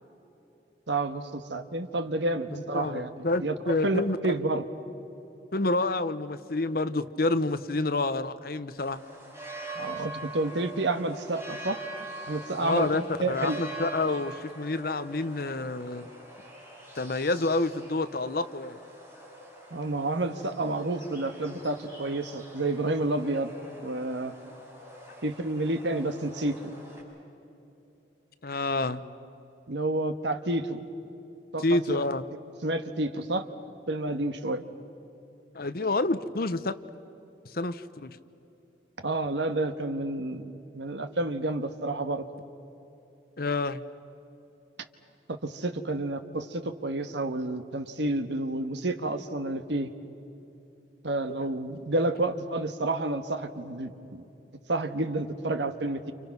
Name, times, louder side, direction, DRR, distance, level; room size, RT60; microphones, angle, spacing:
voice 1, 0.9-4.6 9.7-11.8 12.3-13.6 19.7-23.5 23.8-24.3 25.2-26.7 29.7-30.8 31.5-32.0 32.6-33.5 33.9-34.6 39.0-42.2 45.4-49.9 51.0-54.2 54.7-56.1, right 2 dB, 90° right, 8 dB, 1.5 m, -30 dB
voice 2, 2.5-4.2 5.5-9.0 12.6-13.0 13.3-16.1 16.9-18.8 28.4-29.0 31.6-32.3 35.5-36.7 37.4-38.2 43.4-43.8 51.4-51.5, left 2 dB, 55° left, 12 dB, 0.9 m, -28 dB
sound 1, 8.8-27.0, right 2 dB, 15° right, 6.5 m, -44 dB
29.5 x 29.5 x 6.1 m, 3.0 s
head